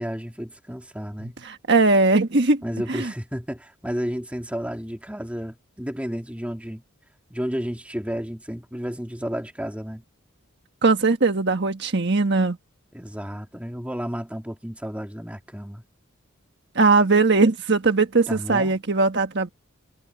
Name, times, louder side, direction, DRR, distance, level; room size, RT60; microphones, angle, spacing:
voice 1, 0.0-1.4 2.6-6.8 7.3-10.0 12.9-15.8 18.3-18.7, equal, 5° right, 2.5 m, -32 dB
voice 2, 1.4-2.6 2.9-3.1 10.8-12.6 16.7-19.5, right 3 dB, 55° right, 1.4 m, -19 dB
head